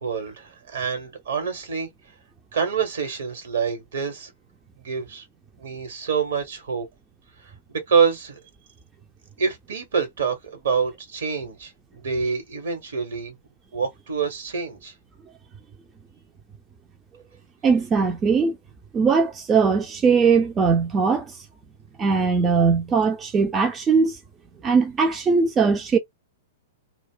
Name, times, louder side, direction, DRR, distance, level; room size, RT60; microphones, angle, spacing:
voice 1, 0.0-1.9 2.5-4.3 4.8-5.2 5.6-6.8 7.7-8.4 9.4-13.3 13.7-14.9, right 6 dB, 65° right, 1.2 m, -26 dB
voice 2, 17.6-18.6 18.9-21.3 22.0-24.2 24.6-26.0, right 5 dB, 20° right, 0.5 m, -20 dB
2.3 x 2.1 x 3.7 m
figure-of-eight pair, 105°, 0 cm